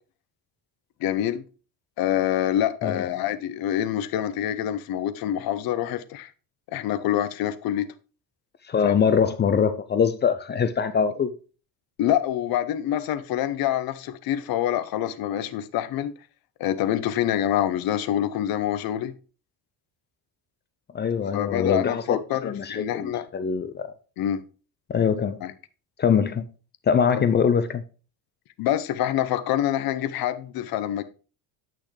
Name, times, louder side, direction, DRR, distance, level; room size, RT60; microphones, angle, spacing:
voice 1, 1.0-1.4 2.0-6.3 6.7-7.9 8.8-8.9 12.0-16.2 16.6-19.1 21.3-23.3 24.2-24.4 25.4-25.5 27.1-27.3 28.6-31.0, left 11 dB, 55° left, 0.7 m, -26 dB
voice 2, 8.7-11.3 20.9-23.9 24.9-25.4 26.0-26.5 26.9-27.8, left 6 dB, 25° left, 0.4 m, -23 dB
8.6 x 6.1 x 3.2 m
cardioid pair, 155°, 43 cm